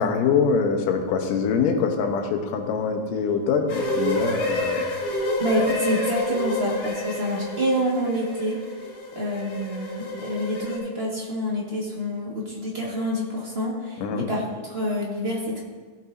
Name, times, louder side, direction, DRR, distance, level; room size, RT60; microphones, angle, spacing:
voice 1, 0.0-4.9 14.0-14.3, left 5 dB, 90° left, 5 dB, 2.5 m, -24 dB
sound 1, 3.7-10.8, left 1 dB, 60° left, 3.8 m, -29 dB
voice 2, 5.4-8.6 9.1-15.6, equal, 35° right, -4 dB, 1.0 m, -27 dB
15.5 x 8.7 x 2.7 m, 1.4 s
omnidirectional pair, 3.7 m